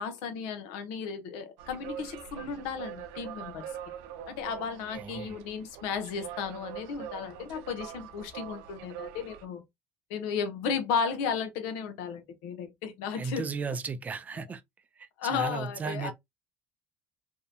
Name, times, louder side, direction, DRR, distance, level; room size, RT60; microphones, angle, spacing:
voice 1, 0.0-3.7 4.3-9.6 10.1-13.5 15.2-16.1, left 6 dB, 85° left, 0.7 m, -34 dB
sound 1, 1.6-9.5, right 9 dB, 85° right, 0.5 m, -43 dB
voice 2, 5.0-5.4 13.2-14.6 15.0-16.1, right 5 dB, 25° right, 0.4 m, -35 dB
2.6 x 2.1 x 2.6 m
cardioid pair, 110°, 6 cm